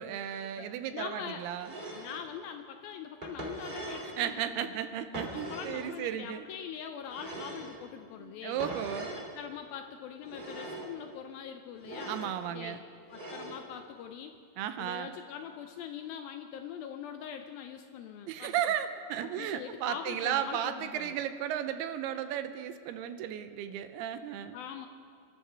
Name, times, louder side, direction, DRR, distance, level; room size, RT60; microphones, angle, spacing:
voice 1, 0.0-1.7 4.0-6.5 8.2-9.2 11.9-12.8 14.6-15.2 18.3-24.6, right 10 dB, 80° right, 10 dB, 2.5 m, -35 dB
voice 2, 0.9-1.4 1.9-4.7 5.3-8.6 9.3-12.8 13.1-14.4 14.8-18.5 19.2-21.2 24.5-24.9, left 8 dB, 80° left, 6 dB, 2.2 m, -43 dB
sound 1, 1.6-2.2 3.2-4.2 5.1-5.8 7.1-7.8 8.6-9.3 10.2-10.9 11.8-12.3 13.1-13.6, right 1 dB, 20° right, 1.3 m, -41 dB
29.5 x 13.0 x 3.4 m, 2.2 s
omnidirectional pair, 4.7 m